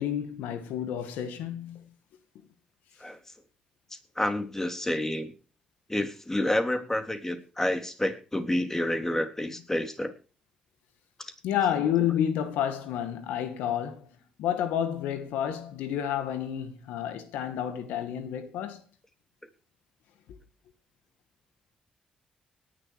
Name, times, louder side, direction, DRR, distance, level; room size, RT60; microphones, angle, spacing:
voice 1, 0.0-1.8 11.4-14.1 14.4-18.8, left 10 dB, 85° left, 2.0 m, -30 dB
voice 2, 4.2-5.3 5.9-10.1 11.2-11.3, left 1 dB, 15° left, 3.5 m, -29 dB
18.0 x 11.0 x 4.9 m
hypercardioid pair, 45°, 3 cm